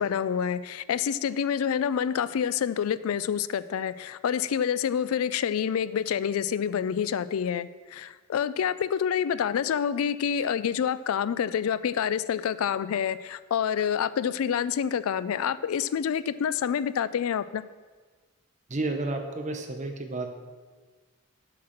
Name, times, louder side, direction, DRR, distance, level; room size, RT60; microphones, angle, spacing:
voice 1, 0.0-17.6, left 8 dB, 85° left, 16 dB, 0.3 m, -27 dB
voice 2, 18.7-20.3, right 2 dB, 35° right, 5 dB, 0.9 m, -31 dB
7.3 x 5.9 x 6.5 m, 1.4 s
head